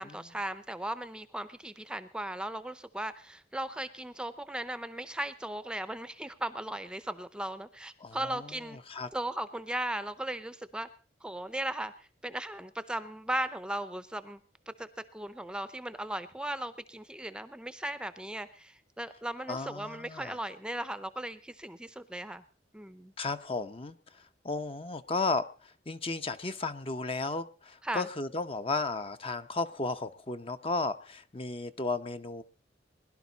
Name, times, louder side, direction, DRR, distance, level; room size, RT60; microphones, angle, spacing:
voice 1, 0.0-8.8 9.1-10.9 11.2-14.4 14.7-22.4 22.7-23.1 27.8-28.1, right 1 dB, 5° right, 13 dB, 0.6 m, -37 dB
voice 2, 8.0-8.6 8.9-9.1 19.5-20.4 23.2-32.4, left 3 dB, 30° left, 10 dB, 0.7 m, -34 dB
21.5 x 11.5 x 4.0 m, 0.36 s
head